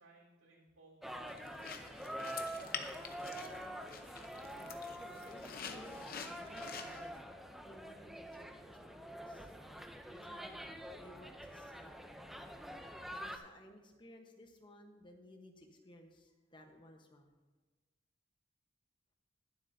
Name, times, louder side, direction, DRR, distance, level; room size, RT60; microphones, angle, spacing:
voice 1, 0.0-4.1 5.1-5.4, right 2 dB, 85° right, -5 dB, 3.9 m, -64 dB
sound 1, 1.0-13.4, equal, ahead, 0.5 m, -46 dB
sound 2, 1.3-7.1, left 6 dB, 45° left, 0.8 m, -48 dB
voice 2, 4.5-7.1 7.6-9.5 10.1-10.7 10.9-11.9 13.1-17.3, left 1 dB, 25° left, 3 dB, 1.1 m, -58 dB
21.5 x 7.7 x 2.7 m, 1.3 s
head